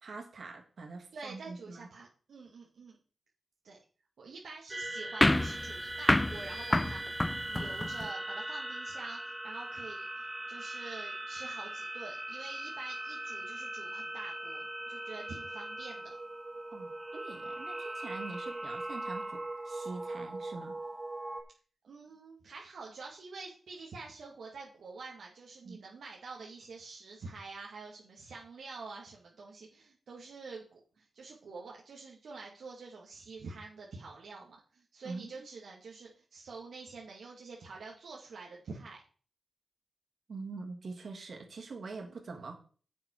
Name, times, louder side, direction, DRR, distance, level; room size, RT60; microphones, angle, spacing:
voice 1, 0.0-1.9 16.7-20.8 25.6-25.8 35.0-35.5 40.3-42.5, right 3 dB, 70° right, 2 dB, 2.8 m, -44 dB
voice 2, 1.1-3.0 3.6-3.8 4.2-7.2 7.5-16.2 21.8-39.0 42.1-42.2, right 4 dB, 85° right, -3 dB, 2.1 m, -47 dB
sound 1, 4.7-21.4, right 1 dB, 20° right, 2.2 m, -40 dB
sound 2, 5.2-8.1, left 1 dB, 20° left, 0.4 m, -28 dB
10.5 x 7.5 x 4.7 m, 0.40 s
cardioid pair, 70°, 0 cm